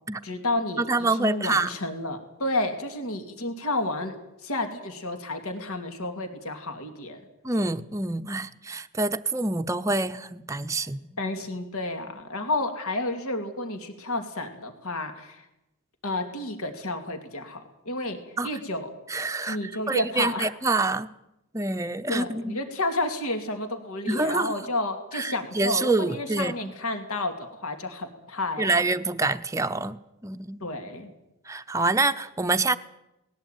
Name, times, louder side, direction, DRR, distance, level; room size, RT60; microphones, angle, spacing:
voice 1, 0.2-7.2 11.2-15.4 16.0-18.9 19.5-20.5 22.1-28.8 30.6-31.1, left 2 dB, 80° left, 6 dB, 2.8 m, -31 dB
voice 2, 0.8-1.8 7.4-11.0 18.4-18.5 19.1-21.1 21.5-22.6 24.1-24.5 25.1-26.7 28.6-30.0 30.2-30.6 31.5-32.8, right 3 dB, 15° right, 8 dB, 0.7 m, -26 dB
19.5 x 17.0 x 9.2 m, 0.90 s
head